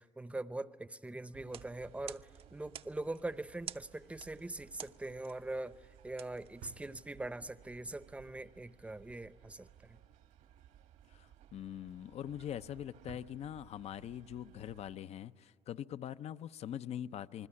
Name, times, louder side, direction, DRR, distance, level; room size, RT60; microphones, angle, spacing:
voice 1, 0.0-10.0, right 2 dB, 10° right, 14 dB, 0.8 m, -42 dB
sound 1, 1.3-15.0, right 10 dB, 70° right, 1.4 m, -61 dB
sound 2, 1.4-7.2, right 8 dB, 45° right, 0.7 m, -52 dB
Drawer open or close, 2.7-7.6 7.9-8.3 8.5-10.7 11.1-14.1 14.5-14.7 14.9-15.0, right 10 dB, 85° right, 2.8 m, -62 dB
voice 2, 11.1-17.5, left 10 dB, 50° left, 15 dB, 0.6 m, -43 dB
28.0 x 20.5 x 9.9 m, 2.4 s
cardioid pair, 100°, 13 cm